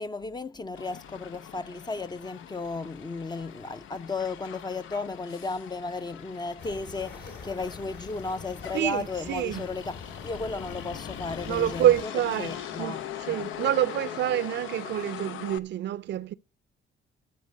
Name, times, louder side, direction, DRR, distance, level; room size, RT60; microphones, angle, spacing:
voice 1, 0.0-7.2 7.4-11.9 12.4-13.0 13.3-13.5, left 3 dB, 20° left, 0.5 m, -34 dB
Motor vehicle (road), 0.7-15.6, left 10 dB, 80° left, 0.6 m, -42 dB
sound 1, 6.6-12.0, left 4 dB, 65° left, 2.9 m, -44 dB
voice 2, 8.7-9.7 11.4-16.3, right 12 dB, 65° right, 0.5 m, -27 dB
13.0 x 4.5 x 7.6 m
cardioid pair, 90°, 20 cm